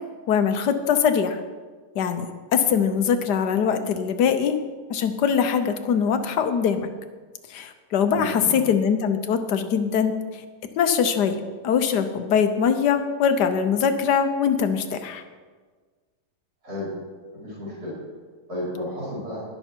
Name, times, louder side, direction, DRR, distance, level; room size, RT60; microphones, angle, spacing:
voice 1, 0.3-1.4 1.9-2.3 2.5-4.6 4.9-6.9 7.5-10.2 10.8-11.4 11.6-15.2, left 7 dB, 80° left, 9 dB, 1.5 m, -22 dB
voice 2, 8.1-8.6 16.6-17.0 17.3-18.0 18.5-19.4, left 1 dB, 70° right, -9 dB, 5.3 m, -32 dB
20.0 x 6.7 x 4.5 m, 1.5 s
omnidirectional pair, 1.8 m